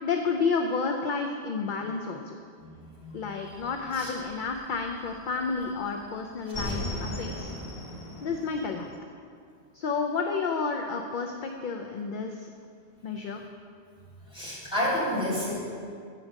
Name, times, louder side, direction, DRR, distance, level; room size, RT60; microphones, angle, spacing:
voice 1, 0.0-2.4 3.1-7.5 8.2-8.9 9.7-12.5 13.0-13.4, left 4 dB, 60° left, 3 dB, 0.6 m, -30 dB
voice 2, 2.6-3.3 3.9-4.1 6.7-6.8 14.3-15.5, left 1 dB, 5° right, -9 dB, 2.4 m, -30 dB
sound 1, 3.4-5.2 5.5-9.0, left 1 dB, 45° left, 1.6 m, -37 dB
7.9 x 5.3 x 6.1 m, 2.2 s
omnidirectional pair, 1.1 m